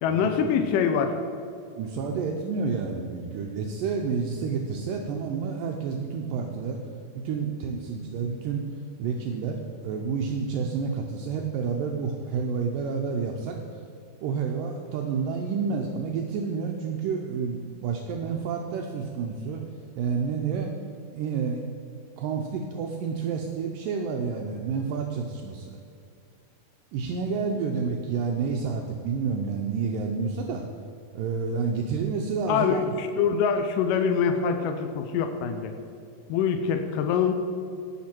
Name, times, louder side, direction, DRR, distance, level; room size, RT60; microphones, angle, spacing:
voice 1, 0.0-1.2 32.5-35.7 36.3-37.3, left 6 dB, 80° left, 6 dB, 2.2 m, -24 dB
voice 2, 1.8-6.8 7.1-8.6 9.0-13.6 14.2-19.6 20.0-20.7 21.1-21.6 22.2-25.7 26.9-30.6 31.1-32.9, right 5 dB, 80° right, 1 dB, 2.2 m, -29 dB
17.0 x 6.0 x 4.4 m, 2.5 s
omnidirectional pair, 4.2 m